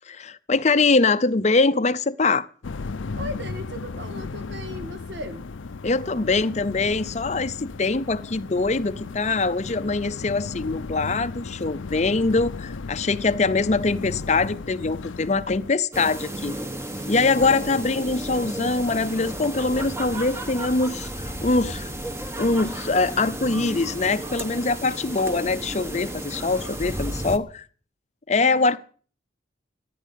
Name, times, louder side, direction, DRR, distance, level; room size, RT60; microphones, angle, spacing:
voice 1, 0.1-2.5 5.8-16.6 17.1-21.9 22.4-27.6 28.3-28.8, left 3 dB, 35° left, 0.6 m, -23 dB
sound 1, 2.6-15.7, left 4 dB, 80° left, 0.6 m, -35 dB
voice 2, 3.1-5.5 17.4-17.8 28.3-28.8, left 1 dB, 60° right, 2.0 m, -37 dB
sound 2, 15.9-27.4, right 1 dB, 15° right, 1.1 m, -33 dB
14.5 x 9.5 x 8.3 m
head